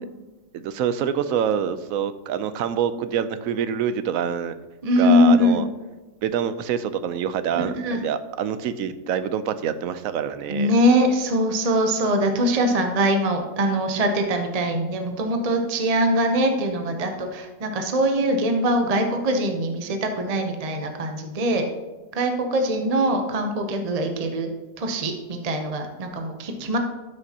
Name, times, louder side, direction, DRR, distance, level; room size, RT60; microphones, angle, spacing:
voice 1, 0.5-4.5 5.0-5.7 6.2-10.7, right 8 dB, 85° right, 12 dB, 1.0 m, -26 dB
voice 2, 4.8-5.6 7.5-8.0 10.5-21.6 22.2-24.5 24.8-26.8, equal, 35° right, 4 dB, 0.7 m, -22 dB
12.5 x 6.5 x 2.8 m, 1.2 s
omnidirectional pair, 1.4 m